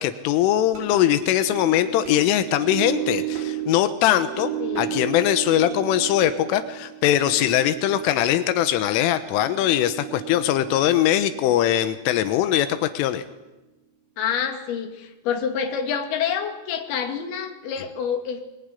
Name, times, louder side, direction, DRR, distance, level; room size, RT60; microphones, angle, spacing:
voice 1, 0.0-13.3, left 12 dB, 90° left, 10 dB, 3.6 m, -21 dB
sound 1, 0.7-13.1, right 12 dB, 55° right, 6.2 m, -34 dB
voice 2, 4.6-5.1 14.2-18.4, left 7 dB, 60° left, 5 dB, 4.0 m, -27 dB
23.0 x 22.0 x 10.0 m, 1.1 s
omnidirectional pair, 5.6 m